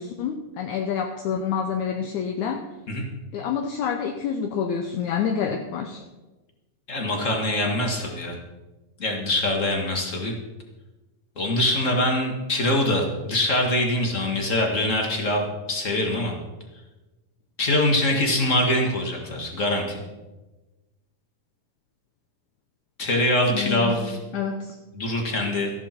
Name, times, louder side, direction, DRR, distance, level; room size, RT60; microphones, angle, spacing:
voice 1, 0.0-2.7 3.3-6.0 23.5-24.8, left 7 dB, 70° left, 4 dB, 2.0 m, -28 dB
voice 2, 6.9-8.3 9.0-10.3 11.4-16.3 17.6-20.0 23.0-24.2 24.9-25.7, left 1 dB, 45° left, 2 dB, 1.0 m, -23 dB
14.0 x 11.5 x 4.4 m, 1.1 s
omnidirectional pair, 3.9 m